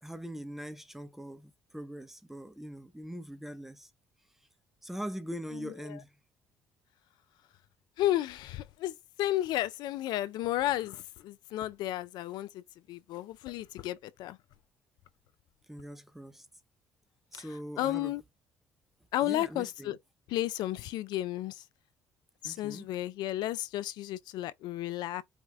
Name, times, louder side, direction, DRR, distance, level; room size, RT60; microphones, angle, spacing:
voice 1, 0.0-3.9 4.8-6.2 15.7-16.5 17.3-18.1 19.2-20.0 22.4-22.9, equal, 5° right, 0.9 m, -42 dB
voice 2, 5.5-6.0 8.0-12.6 12.9-14.4 17.3-17.4 17.8-18.2 19.1-20.0 20.3-21.6 22.4-25.2, left 14 dB, 70° left, 0.4 m, -33 dB
5.0 x 2.3 x 3.3 m
supercardioid pair, 65°, 8 cm